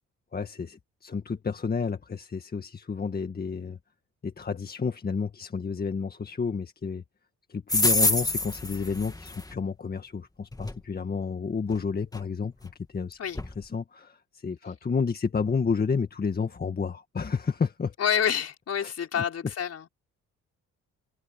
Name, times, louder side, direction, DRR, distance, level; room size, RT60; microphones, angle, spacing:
voice 1, 0.3-3.8 4.2-7.0 7.5-13.2 13.6-17.9 18.8-19.2, left 5 dB, 30° left, 1.8 m, -31 dB
sound 1, 7.7-9.5 10.5-10.8 11.7-11.8 12.1-12.2 12.7-12.8 13.4-13.5, left 2 dB, 10° left, 2.6 m, -26 dB
voice 2, 18.0-19.9, left 8 dB, 55° left, 4.4 m, -28 dB
cardioid pair, 90°, 30 cm